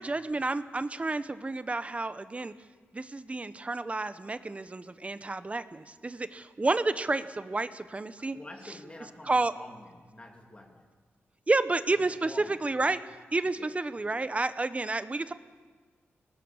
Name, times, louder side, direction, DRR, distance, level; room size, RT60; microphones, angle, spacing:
voice 1, 0.0-2.5 2.9-8.4 9.3-9.5 11.5-13.0 13.3-15.3, right 3 dB, 30° right, 12 dB, 1.0 m, -30 dB
voice 2, 8.2-10.9 11.9-13.0 13.6-13.7 14.0-14.1, left 1 dB, 25° left, 2 dB, 3.2 m, -48 dB
23.0 x 19.0 x 7.3 m, 1.4 s
cardioid pair, 85°, 5 cm